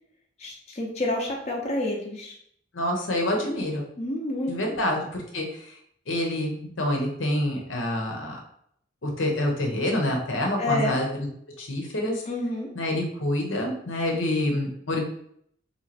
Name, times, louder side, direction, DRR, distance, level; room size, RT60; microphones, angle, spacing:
voice 1, 0.4-2.4 4.0-4.8 10.6-11.0 12.2-12.7, left 1 dB, 35° left, -2 dB, 0.8 m, -29 dB
voice 2, 2.7-3.8 4.5-5.7 6.1-8.4 9.0-11.1 11.6-12.2 12.7-15.0, left 1 dB, 80° left, 1 dB, 1.0 m, -27 dB
3.4 x 3.1 x 4.2 m, 0.68 s
head